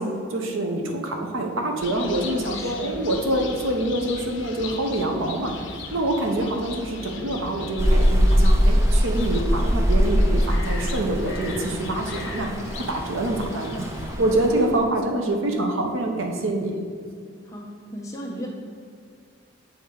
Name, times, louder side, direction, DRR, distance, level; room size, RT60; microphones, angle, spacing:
voice 1, 0.0-5.5 5.9-16.8, right 1 dB, 85° right, 2 dB, 0.8 m, -26 dB
sound 1, 1.8-14.2, left 3 dB, 65° left, 0.7 m, -38 dB
voice 2, 2.3-3.0 17.4-18.5, equal, 15° left, -3 dB, 0.9 m, -36 dB
Rain, 7.8-14.8, equal, 15° right, 0.4 m, -22 dB
7.3 x 3.5 x 4.6 m, 2.3 s
head